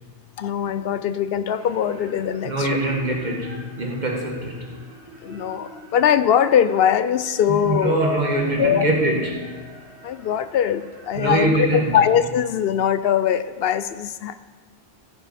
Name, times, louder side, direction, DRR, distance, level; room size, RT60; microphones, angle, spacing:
voice 1, 0.4-2.7 5.2-8.1 8.6-8.9 10.0-11.7 11.9-14.4, left 9 dB, 65° left, 13 dB, 0.8 m, -21 dB
sound 1, 1.5-12.1, right 1 dB, 90° right, 2.2 m, -41 dB
voice 2, 2.4-4.7 7.5-9.5 11.2-11.9, right 2 dB, 45° right, 0 dB, 1.8 m, -23 dB
15.0 x 9.1 x 4.2 m, 1.4 s
omnidirectional pair, 1.1 m